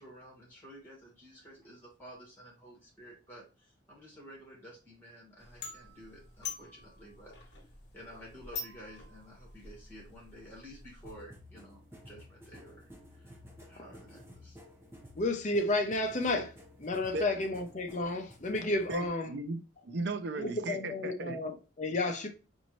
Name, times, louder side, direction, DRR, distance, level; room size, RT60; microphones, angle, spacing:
voice 1, 0.0-7.6 7.9-14.6, equal, 10° left, 2.0 m, -52 dB
sound 1, 5.4-11.2, left 4 dB, 60° left, 1.0 m, -46 dB
sound 2, 11.0-19.1, left 1 dB, 15° right, 1.1 m, -53 dB
voice 2, 15.2-16.5 16.8-19.3 20.4-22.3, left 2 dB, 40° left, 0.6 m, -32 dB
voice 3, 18.9-21.4, right 2 dB, 60° right, 0.5 m, -36 dB
4.2 x 2.7 x 3.0 m
head